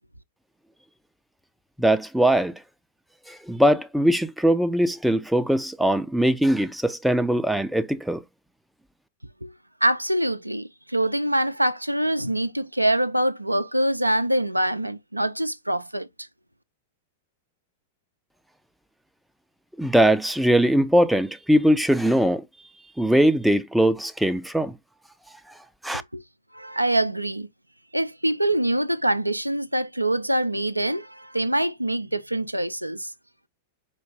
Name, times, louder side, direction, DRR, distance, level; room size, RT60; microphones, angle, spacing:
voice 1, 1.8-2.5 3.3-8.2 19.8-22.4 23.0-24.7 25.8-26.0, right 1 dB, ahead, 0.4 m, -21 dB
voice 2, 9.8-16.1 25.9-26.2 26.5-27.5 27.9-33.1, right 1 dB, 90° right, 0.3 m, -24 dB
4.6 x 2.4 x 3.2 m
figure-of-eight pair, 95°, 0 cm